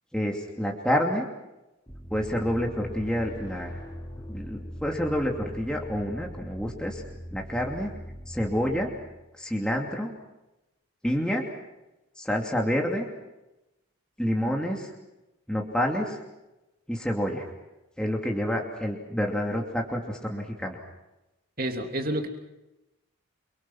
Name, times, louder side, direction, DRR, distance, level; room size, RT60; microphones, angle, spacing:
voice 1, 0.1-1.3 2.1-3.8 4.1-7.0 7.3-7.9 8.3-8.9 9.4-10.1 11.0-11.4 12.2-13.1 14.2-14.9 15.5-16.2 16.9-17.5 18.0-20.8, equal, 5° left, 0 dB, 2.8 m, -28 dB
sound 1, 1.9-9.3, equal, 20° left, 3.2 m, -41 dB
voice 2, 21.6-22.3, right 1 dB, 40° right, 4 dB, 3.1 m, -29 dB
29.5 x 24.0 x 6.2 m, 0.98 s
head